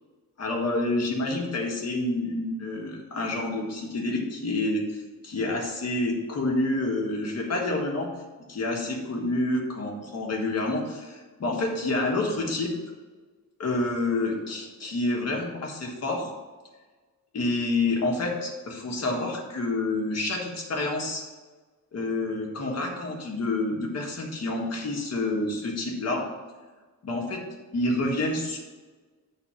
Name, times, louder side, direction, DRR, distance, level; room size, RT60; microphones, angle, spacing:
voice 1, 0.4-8.1 8.5-12.7 13.6-16.3 17.3-21.2 21.9-26.3 27.0-27.4 27.7-28.6, left 2 dB, 50° left, 0 dB, 1.6 m, -28 dB
8.7 x 4.0 x 5.7 m, 1.3 s
wide cardioid pair, 175°, 33 cm